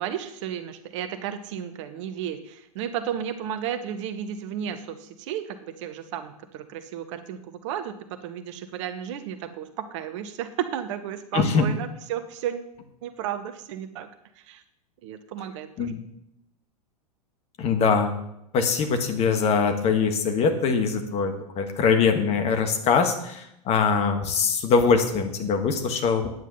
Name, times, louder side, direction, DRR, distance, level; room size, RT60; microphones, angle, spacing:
voice 1, 0.0-7.9 8.2-12.7 13.0-14.1 14.4-14.6 15.0-16.0, right 9 dB, 50° right, 10 dB, 0.9 m, -33 dB
voice 2, 11.3-11.7 15.8-16.0 17.6-18.1 18.5-26.3, left 5 dB, 30° left, 6 dB, 1.5 m, -22 dB
9.5 x 8.3 x 5.5 m, 0.80 s
figure-of-eight pair, 90°, 20 cm